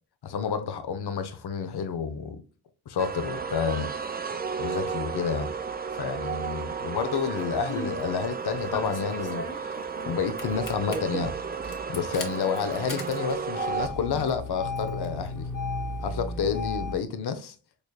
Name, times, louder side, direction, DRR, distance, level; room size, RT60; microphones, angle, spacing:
voice 1, 0.2-2.4 2.9-3.9 4.6-5.5 5.9-9.7 10.1-11.3 11.9-15.5 16.0-17.6, left 6 dB, 70° left, 0.6 m, -30 dB
sound 1, 3.0-13.9, right 6 dB, 25° right, 0.4 m, -33 dB
Engine starting, 7.4-8.0 8.7-10.1 10.4-10.9 11.6-17.0, left 2 dB, 50° left, 1.0 m, -35 dB
4.0 x 3.2 x 2.2 m
cardioid pair, 45°, 40 cm